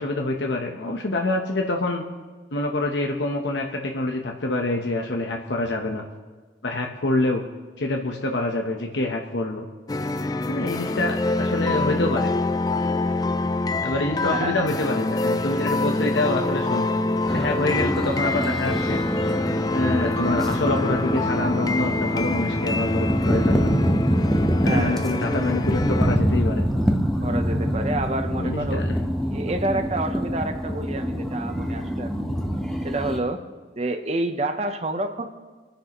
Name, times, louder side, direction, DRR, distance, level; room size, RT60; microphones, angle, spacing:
voice 1, 0.0-2.1 2.5-6.0 6.6-7.4 7.8-9.7 10.5-12.3 13.8-17.0 17.3-19.0 19.7-23.8 24.6-26.6 28.3-28.9, left 2 dB, 80° left, 2 dB, 1.0 m, -26 dB
sound 1, 9.9-26.2, left 2 dB, 20° left, 0.4 m, -26 dB
sound 2, 17.3-33.2, equal, ahead, 1.0 m, -25 dB
voice 2, 24.6-25.1 27.2-28.8 29.2-32.4 32.8-33.5 33.8-35.3, right 2 dB, 35° right, 6 dB, 0.8 m, -28 dB
26.5 x 10.0 x 3.1 m, 1.4 s
head